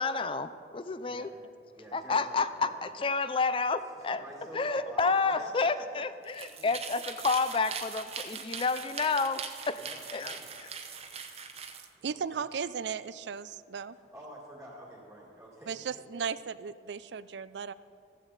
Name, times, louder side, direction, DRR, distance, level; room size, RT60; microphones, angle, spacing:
voice 1, 0.0-1.3 1.9-4.2 4.5-9.4 9.7-9.8 10.1-10.7, left 4 dB, 30° left, 12 dB, 0.4 m, -30 dB
voice 2, 1.8-2.8 3.8-6.0 9.7-10.6 12.0-12.4 13.9-15.9, right 1 dB, ahead, -5 dB, 2.0 m, -48 dB
sound 1, 6.2-11.9, right 6 dB, 35° right, 0.8 m, -41 dB
voice 3, 12.0-14.0 15.7-17.7, right 6 dB, 80° right, 16 dB, 0.4 m, -36 dB
15.0 x 14.5 x 4.1 m, 2.4 s
head